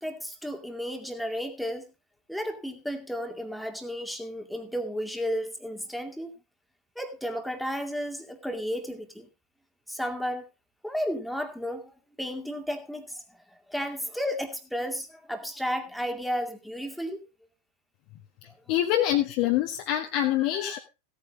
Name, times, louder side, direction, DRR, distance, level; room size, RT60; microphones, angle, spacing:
voice 1, 0.0-1.9 2.3-6.3 7.0-9.3 9.9-10.5 10.8-11.9 12.2-13.2 13.7-17.2 18.5-18.6, equal, ahead, 6 dB, 2.3 m, -33 dB
voice 2, 18.7-20.8, left 12 dB, 45° left, 1 dB, 1.6 m, -25 dB
16.5 x 9.0 x 3.9 m, 0.28 s
figure-of-eight pair, 90°, 0 cm